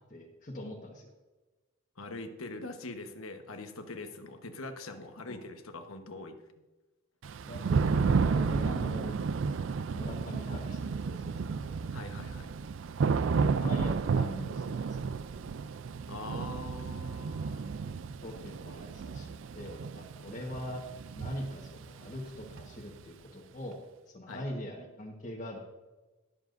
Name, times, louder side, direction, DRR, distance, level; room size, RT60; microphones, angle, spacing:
voice 1, 0.1-1.1 5.3-5.4 7.5-9.2 9.9-11.8 13.4-15.1 18.2-20.8 21.1-23.8 24.1-25.6, left 1 dB, 40° left, -2 dB, 1.3 m, -42 dB
voice 2, 2.0-6.4 11.9-12.5 16.1-17.7 24.3-24.4, left 2 dB, 90° left, 6 dB, 1.1 m, -43 dB
Thunder / Rain, 7.2-23.0, right 5 dB, 65° right, 0.4 m, -32 dB
20.0 x 7.3 x 2.6 m, 1.2 s
head